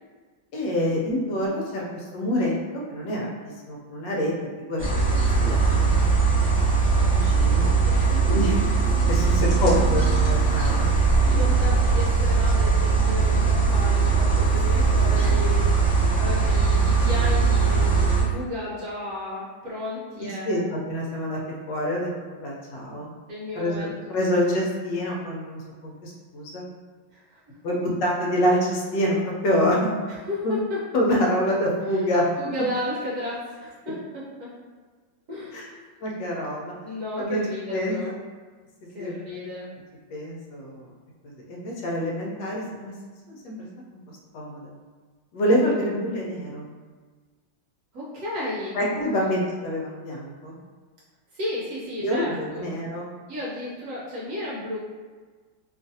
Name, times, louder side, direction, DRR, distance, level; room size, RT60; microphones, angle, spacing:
voice 1, 0.5-3.3 3.7-6.1 6.4-7.7 8.3-8.5 9.0-10.9 20.4-21.4 21.7-23.1 23.6-26.6 27.6-29.9 30.4-30.5 30.9-32.3 35.5-35.7 36.0-36.7 37.2-37.4 37.7-38.2 39.0-39.1 40.1-40.9 41.2-42.9 43.3-43.7 44.3-44.7 45.3-46.7 48.7-50.6 52.0-53.1, equal, 75° left, -3 dB, 1.2 m, -26 dB
sound 1, 4.8-18.2, right 4 dB, 10° right, 0.5 m, -20 dB
voice 2, 7.9-8.6 9.2-9.4 10.7-15.8 16.2-20.6 23.3-23.9 27.1-27.4 30.3-30.8 32.4-34.0 34.4-34.5 35.3-35.8 36.8-38.1 38.9-39.7 47.9-49.3 51.3-52.8 53.3-54.8, left 1 dB, 70° right, -7 dB, 1.0 m, -33 dB
sound 2, 9.5-16.6, equal, 50° left, 1.1 m, -34 dB
3.0 x 2.4 x 2.6 m, 1.4 s
omnidirectional pair, 2.1 m